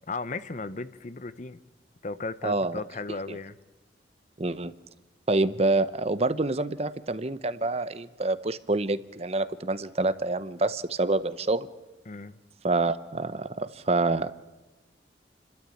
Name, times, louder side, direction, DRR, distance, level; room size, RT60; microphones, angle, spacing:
voice 1, 0.1-1.6 2.0-3.6 12.1-12.4, left 3 dB, 45° left, 0.8 m, -35 dB
voice 2, 2.4-2.8 3.1-3.4 4.4-4.7 5.3-11.7 12.6-14.3, right 2 dB, 35° right, 0.7 m, -27 dB
30.0 x 13.0 x 8.6 m
head